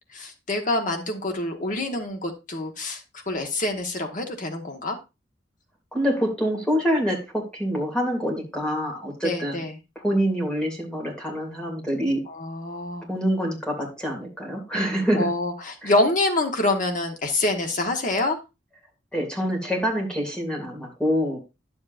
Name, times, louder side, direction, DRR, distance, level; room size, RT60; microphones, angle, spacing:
voice 1, 0.1-3.0 3.3-5.0 9.2-9.8 12.3-13.1 15.1-18.4, left 2 dB, 45° left, 4 dB, 1.4 m, -26 dB
voice 2, 5.9-9.6 10.0-12.2 13.1-15.3 15.8-15.9 19.1-21.4, equal, 5° left, 0 dB, 2.6 m, -26 dB
10.5 x 7.3 x 2.6 m, 0.26 s
head